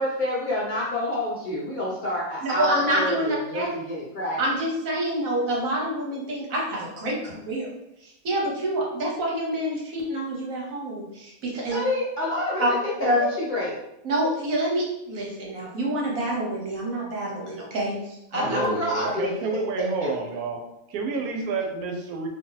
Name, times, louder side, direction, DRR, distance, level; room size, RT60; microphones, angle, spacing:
voice 1, 0.0-4.4 11.7-13.8 18.3-20.2, left 1 dB, 40° left, -5 dB, 0.8 m, -28 dB
voice 2, 2.4-3.7 4.4-7.7 8.0-11.8 12.6-12.7 13.0-13.2 14.0-18.6, right 1 dB, 70° right, -3 dB, 1.3 m, -27 dB
voice 3, 18.4-20.6 20.9-22.3, right 4 dB, 90° right, 2 dB, 1.1 m, -29 dB
2.8 x 2.6 x 3.9 m, 0.85 s
omnidirectional pair, 1.5 m